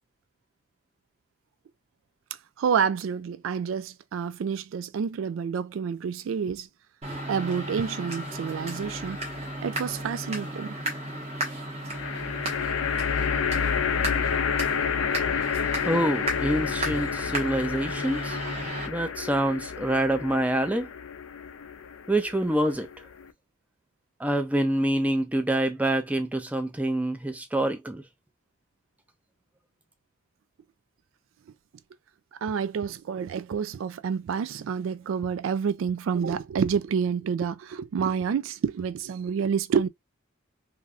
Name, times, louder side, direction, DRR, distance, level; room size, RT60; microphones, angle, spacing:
voice 1, 2.6-6.7 7.3-9.2 9.6-10.8 13.5-13.7 32.4-39.9, right 6 dB, 75° right, 0.3 m, -28 dB
sound 1, 7.0-18.9, right 1 dB, 30° right, 1.1 m, -35 dB
sound 2, 8.8-9.5 11.9-23.3, left 7 dB, 85° left, 0.5 m, -30 dB
voice 2, 15.8-18.4 18.8-20.9 22.1-22.9 24.2-28.0, right 1 dB, 5° right, 0.4 m, -26 dB
3.3 x 2.5 x 2.3 m
head